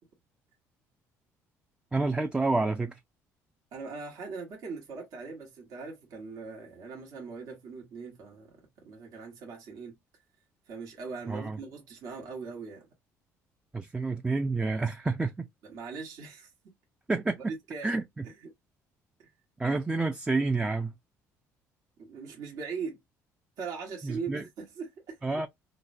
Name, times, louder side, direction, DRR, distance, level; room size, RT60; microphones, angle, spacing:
voice 1, 1.9-3.0 11.3-11.6 13.7-15.5 17.1-17.5 17.8-18.2 19.6-20.9 24.0-24.4 25.2-25.5, right 3 dB, 15° right, 0.4 m, -29 dB
voice 2, 3.7-10.0 10.7-12.9 15.6-16.5 17.5-17.9 18.2-18.5 19.2-19.3 22.0-23.0 23.6-25.2, right 5 dB, 70° right, 1.2 m, -40 dB
3.8 x 2.1 x 2.5 m
cardioid pair, 95°, 6 cm